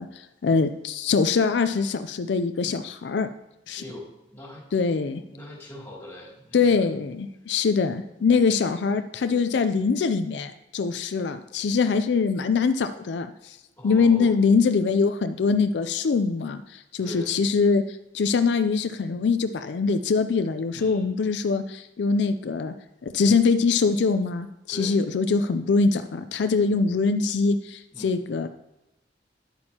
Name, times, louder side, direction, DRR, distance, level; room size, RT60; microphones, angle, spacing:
voice 1, 0.0-3.3 3.7-3.8 4.7-5.2 6.5-13.6 13.8-22.7 23.0-28.5, left 4 dB, 70° left, 10 dB, 0.4 m, -23 dB
voice 2, 3.8-4.6 5.3-6.9 8.5-8.6 13.8-14.3 17.0-17.3 20.7-21.1 24.7-25.0 27.9-28.2, left 1 dB, 15° left, -4 dB, 2.6 m, -40 dB
10.5 x 8.7 x 2.8 m, 0.94 s
head